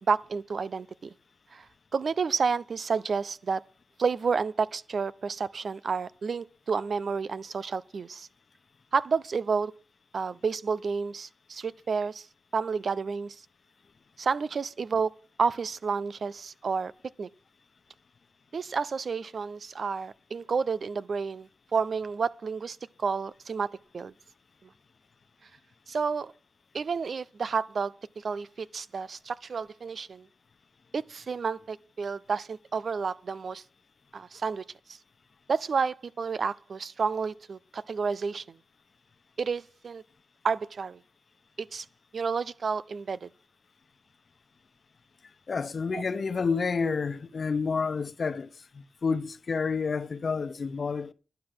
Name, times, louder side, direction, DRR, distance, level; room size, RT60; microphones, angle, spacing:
voice 1, 0.1-1.1 1.5-1.6 1.9-3.6 4.0-8.3 8.9-9.7 10.1-12.2 12.5-13.4 14.2-15.1 15.4-16.9 17.2-17.3 18.5-22.8 23.0-23.7 23.9-24.1 25.9-26.3 26.7-27.9 28.2-30.2 30.9-33.6 34.1-34.6 35.5-38.4 39.4-40.0 40.4-41.0 41.7-41.8 42.1-43.3 45.9-46.0, right 5 dB, 65° right, 0.7 m, -30 dB
voice 2, 45.5-48.5 48.7-51.1, left 5 dB, 60° left, 1.1 m, -29 dB
12.0 x 8.0 x 7.6 m
cardioid pair, 55°, 0 cm